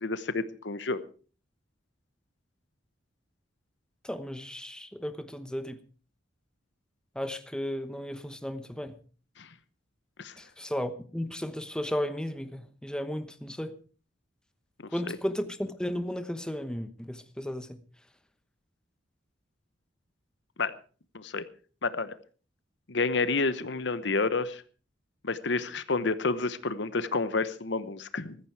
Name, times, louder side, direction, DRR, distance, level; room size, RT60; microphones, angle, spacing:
voice 1, 0.0-1.0 9.4-9.5 10.2-10.4 15.1-15.2 20.6-20.7 21.1-21.4 21.8-22.2 22.9-24.6 25.2-28.4, left 3 dB, 65° left, 1.0 m, -29 dB
voice 2, 4.0-5.8 7.1-9.0 10.4-13.8 14.9-17.8, equal, 5° left, 1.0 m, -34 dB
15.0 x 14.0 x 4.8 m
head